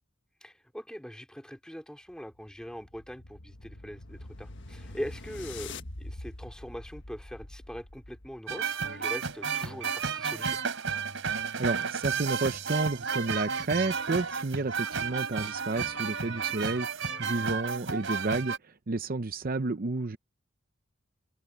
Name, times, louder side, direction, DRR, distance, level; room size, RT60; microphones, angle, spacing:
voice 1, 0.4-10.6 17.1-17.4, equal, 5° left, 3.4 m, -42 dB
sound 1, 2.1-8.5, left 2 dB, 60° left, 1.6 m, -44 dB
sound 2, 8.5-18.6, right 6 dB, 65° right, 3.3 m, -32 dB
voice 2, 11.6-20.2, right 3 dB, 45° right, 0.7 m, -31 dB
head